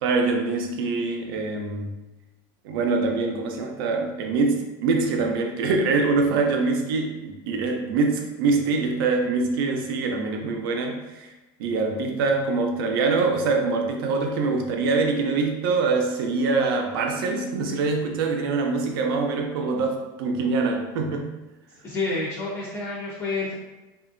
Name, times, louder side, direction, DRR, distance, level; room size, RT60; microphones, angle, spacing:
voice 1, 0.0-1.9 2.6-11.3 11.6-21.3, right 3 dB, 85° right, 3 dB, 0.5 m, -24 dB
voice 2, 21.8-23.5, left 3 dB, 25° left, -6 dB, 0.4 m, -29 dB
2.8 x 2.4 x 2.5 m, 1.1 s
supercardioid pair, 165°, 12 cm